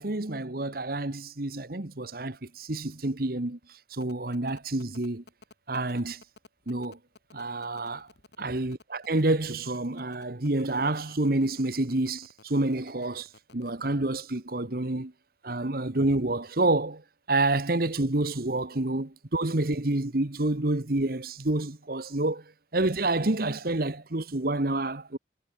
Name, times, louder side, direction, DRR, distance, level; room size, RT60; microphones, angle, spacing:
voice 1, 0.0-3.6 3.9-5.2 5.7-6.2 6.7-7.0 7.3-8.0 8.4-15.1 15.4-17.0 17.3-22.4 22.7-25.2, right 2 dB, 55° right, 1.5 m, -28 dB
sound 1, 4.0-13.7, left 3 dB, 75° left, 3.4 m, -54 dB
head